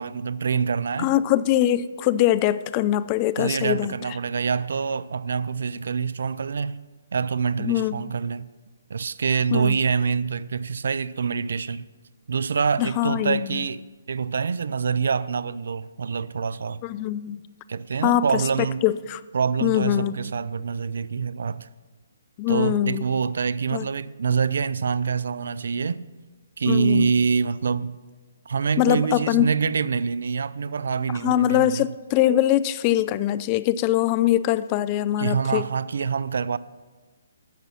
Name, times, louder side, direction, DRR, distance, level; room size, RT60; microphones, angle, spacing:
voice 1, 0.0-1.1 3.4-6.8 7.1-8.5 8.9-11.9 12.3-13.8 14.1-16.8 17.7-18.8 19.3-21.7 22.5-26.0 26.6-28.0 28.5-31.9 35.2-36.6, right 5 dB, 70° right, 0.5 m, -25 dB
voice 2, 1.0-3.9 7.6-8.0 9.5-9.8 12.8-13.6 16.8-17.4 18.0-18.4 18.8-19.2 19.6-20.1 22.4-23.0 23.7-23.9 26.7-27.1 28.8-29.5 31.2-35.6, left 13 dB, 30° left, 0.4 m, -22 dB
12.0 x 7.4 x 5.8 m
hypercardioid pair, 145°, 0 cm